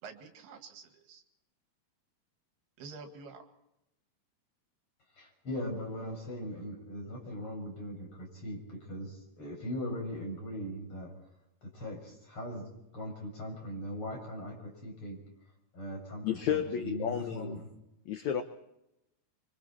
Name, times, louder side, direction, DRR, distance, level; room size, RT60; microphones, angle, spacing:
voice 1, 0.0-1.2 2.8-3.5 6.0-6.5, right 4 dB, 80° right, 6 dB, 4.0 m, -49 dB
voice 2, 5.2-11.1 11.6-15.2 15.7-17.7, equal, 35° left, 0 dB, 6.8 m, -40 dB
voice 3, 16.2-17.5 18.1-18.4, left 9 dB, 70° left, 8 dB, 1.8 m, -32 dB
26.5 x 25.0 x 4.3 m, 0.85 s
omnidirectional pair, 4.5 m